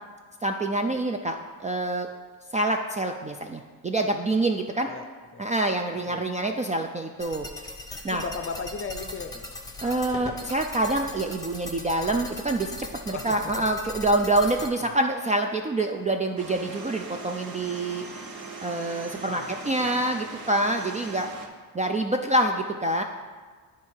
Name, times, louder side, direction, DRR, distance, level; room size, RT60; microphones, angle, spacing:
voice 1, 0.4-2.1 2.5-4.9 5.4-7.5 8.0-8.2 9.8-12.8 13.1-18.1 18.6-21.3 21.7-23.0, right 2 dB, 20° right, 3 dB, 0.4 m, -26 dB
sound 1, 7.2-14.7, left 2 dB, 10° left, 0.8 m, -39 dB
voice 2, 8.1-10.2 13.1-13.7 14.8-14.9 19.4-20.0, left 5 dB, 30° left, 7 dB, 0.6 m, -37 dB
sound 2, 16.4-21.5, right 3 dB, 55° right, 1.2 m, -40 dB
9.5 x 3.6 x 4.5 m, 1.5 s
supercardioid pair, 80°, 43 cm